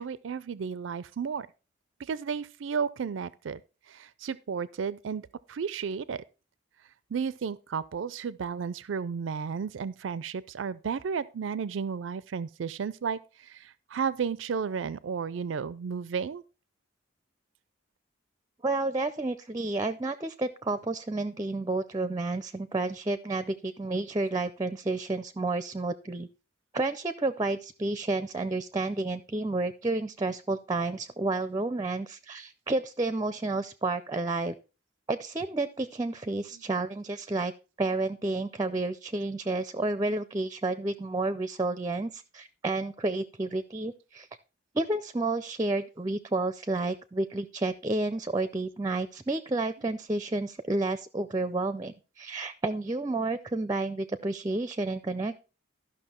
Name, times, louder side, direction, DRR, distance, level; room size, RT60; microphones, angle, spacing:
voice 1, 0.0-1.5 2.0-3.6 3.9-6.2 7.1-16.4, right 6 dB, 80° right, 0.4 m, -33 dB
voice 2, 18.6-26.3 26.7-34.6 35.1-37.5 37.8-44.3 44.7-55.3, right 2 dB, 20° right, 0.5 m, -30 dB
13.0 x 5.9 x 4.3 m
head